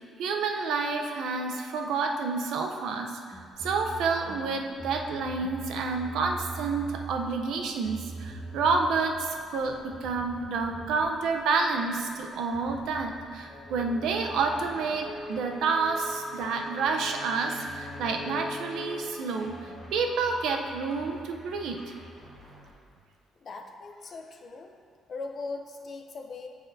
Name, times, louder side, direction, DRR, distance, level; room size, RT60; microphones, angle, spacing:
voice 1, 0.2-21.8, right 4 dB, 70° right, 3 dB, 0.5 m, -29 dB
sound 1, 3.3-22.7, right 2 dB, 15° right, 1.3 m, -45 dB
sound 2, 13.5-20.1, left 2 dB, 70° left, 1.1 m, -42 dB
voice 2, 23.4-24.8 25.1-26.5, left 3 dB, 35° left, 4 dB, 0.5 m, -39 dB
9.2 x 4.2 x 2.6 m, 2.4 s
cardioid pair, 165°, 0 cm